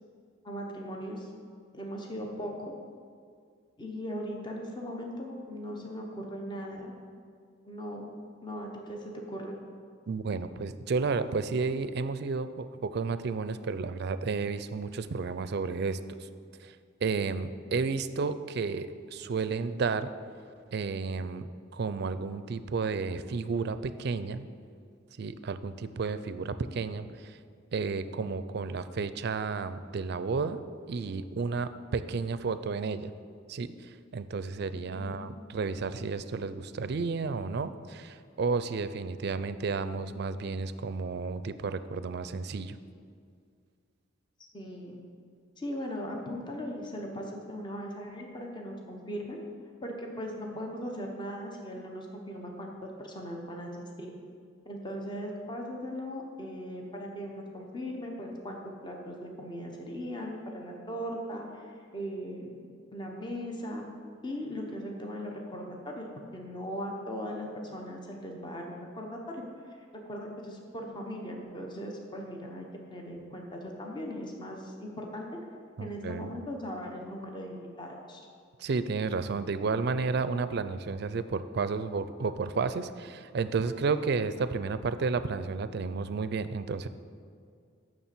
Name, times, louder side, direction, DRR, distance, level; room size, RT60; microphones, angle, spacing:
voice 1, 0.4-1.3 1.7-2.7 3.8-6.9 7.6-9.6 35.0-35.3 44.5-45.1 45.6-49.4 49.8-53.7 54.0-54.1 54.6-63.9 64.2-69.5 69.8-75.3 75.8-78.2, equal, 25° left, 1 dB, 1.0 m, -39 dB
voice 2, 10.1-16.0 16.6-16.8 17.0-20.1 20.7-21.5 21.7-24.5 25.2-27.4 27.7-30.6 30.9-33.1 33.5-42.8 75.8-76.3 78.6-86.9, right 4 dB, 60° right, 13 dB, 0.4 m, -32 dB
7.0 x 6.1 x 7.5 m, 2.2 s
head